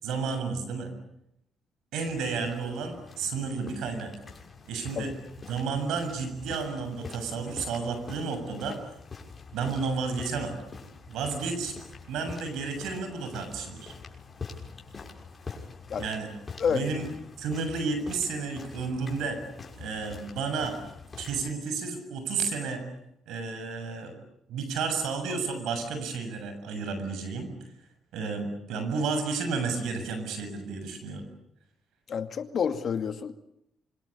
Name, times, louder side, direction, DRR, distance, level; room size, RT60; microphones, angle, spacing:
voice 1, 0.0-0.9 1.9-4.1 4.7-5.1 5.5-8.8 9.5-10.6 11.1-11.7 12.1-13.9 16.0-16.3 16.7-17.1 17.4-19.4 19.8-20.8 21.2-22.8 23.3-24.1 24.5-27.5 28.1-31.3, right 4 dB, 85° right, 7 dB, 7.2 m, -31 dB
sound 1, 2.1-21.5, left 5 dB, 30° left, 6.2 m, -45 dB
voice 2, 32.1-33.3, left 7 dB, 55° left, 8 dB, 2.4 m, -29 dB
26.5 x 24.0 x 8.7 m, 0.80 s
cardioid pair, 90°, 0 cm